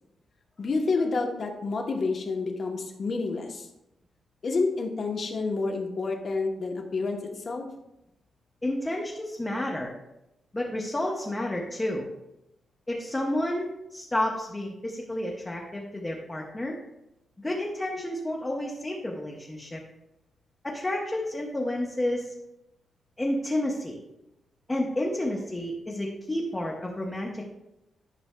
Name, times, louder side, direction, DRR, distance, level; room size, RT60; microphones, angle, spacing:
voice 1, 0.6-3.7 4.4-7.6, left 3 dB, 40° left, 2 dB, 0.9 m, -29 dB
voice 2, 8.6-9.9 10.5-12.1 12.9-16.8 17.4-19.8 20.6-22.3 23.2-24.0 24.7-27.5, left 1 dB, 15° left, -2 dB, 0.7 m, -30 dB
11.0 x 5.9 x 2.2 m, 0.88 s
wide cardioid pair, 175°, 0 cm